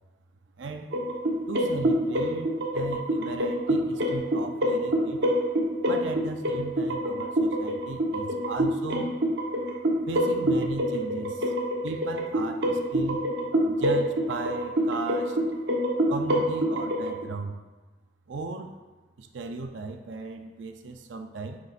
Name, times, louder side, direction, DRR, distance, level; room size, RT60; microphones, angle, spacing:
voice 1, 0.6-0.9 1.5-5.3 5.9-9.1 10.1-11.5 11.8-13.3 13.7-15.4 16.1-17.6 18.3-18.8 19.2-21.6, right 3 dB, 85° right, 6 dB, 0.5 m, -36 dB
sound 1, 0.9-17.2, equal, 65° right, 1.0 m, -27 dB
9.6 x 6.7 x 2.5 m, 1.2 s
head